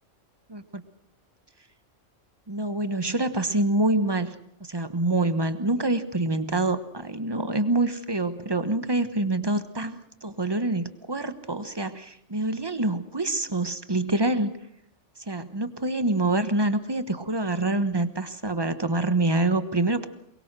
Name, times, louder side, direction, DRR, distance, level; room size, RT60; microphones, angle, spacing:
voice 1, 0.5-0.8 2.5-14.5 15.3-20.1, right 2 dB, 20° right, 11 dB, 1.2 m, -26 dB
22.5 x 22.0 x 6.2 m, 0.70 s
omnidirectional pair, 1.3 m